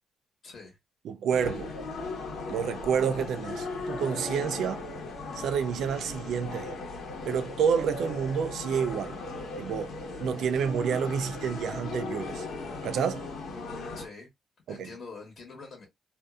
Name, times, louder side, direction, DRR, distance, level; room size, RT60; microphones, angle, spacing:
voice 1, 0.4-0.8 13.9-14.3 14.7-15.9, left 4 dB, 50° left, 1.1 m, -45 dB
voice 2, 1.0-1.7 2.5-4.8 5.3-6.8 7.3-9.1 9.6-12.5 12.8-13.3 14.7-14.9, right 7 dB, 80° right, 0.3 m, -29 dB
sound 1, 1.3-14.1, left 3 dB, 80° left, 1.0 m, -37 dB
2.5 x 2.3 x 2.4 m
cardioid pair, 95°, 0 cm